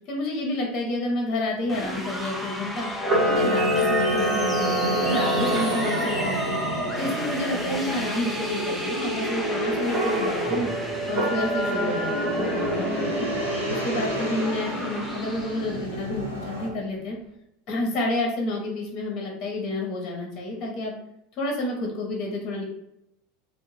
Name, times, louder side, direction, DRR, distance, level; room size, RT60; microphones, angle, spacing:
voice 1, 0.1-2.9 3.2-4.7 5.0-6.6 7.0-10.7 11.1-13.3 13.7-17.2 17.7-20.9 21.3-22.6, left 1 dB, 40° left, 0 dB, 0.7 m, -29 dB
sound 1, 1.7-15.8, equal, 5° right, 0.4 m, -33 dB
Camera, 3.0-6.3 9.8-10.6 11.1-12.9, equal, 45° right, 0.9 m, -26 dB
sound 2, 3.1-16.7, right 1 dB, 85° right, 0.8 m, -30 dB
2.6 x 2.0 x 2.9 m, 0.82 s
figure-of-eight pair, 80°, 0 cm